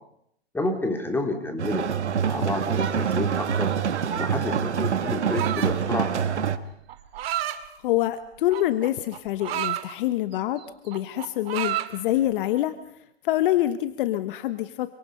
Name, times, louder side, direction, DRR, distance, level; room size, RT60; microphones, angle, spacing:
voice 1, 0.5-1.9 2.2-3.7 4.2-6.1, left 2 dB, 5° left, 4 dB, 3.5 m, -29 dB
sound 1, 1.6-6.6, right 7 dB, 90° right, 1.5 m, -25 dB
sound 2, 5.3-5.9 6.9-7.6 8.5-9.8 10.3-10.6 10.9-11.9, right 13 dB, 60° right, 2.1 m, -30 dB
voice 2, 7.8-12.7 13.2-15.0, left 14 dB, 50° left, 12 dB, 1.2 m, -26 dB
27.0 x 25.0 x 5.5 m, 0.73 s
hypercardioid pair, 125°, 33 cm